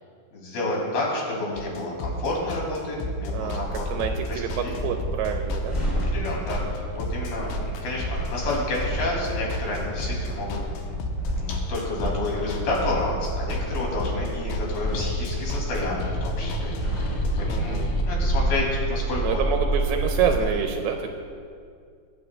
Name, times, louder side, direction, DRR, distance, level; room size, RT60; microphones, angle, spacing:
voice 1, 0.3-3.8 4.3-4.8 6.1-7.6 7.8-10.6 11.3-19.4, left 2 dB, 65° left, -3 dB, 4.2 m, -30 dB
sound 1, 1.6-18.0, left 1 dB, 85° left, 2.9 m, -32 dB
voice 2, 3.3-5.8 7.4-7.8 14.2-14.6 17.4-17.9 19.2-21.1, right 7 dB, 85° right, 4 dB, 2.5 m, -28 dB
sound 2, 3.6-20.4, right 1 dB, 10° left, 2.5 m, -30 dB
21.5 x 9.5 x 2.2 m, 2.2 s
omnidirectional pair, 4.6 m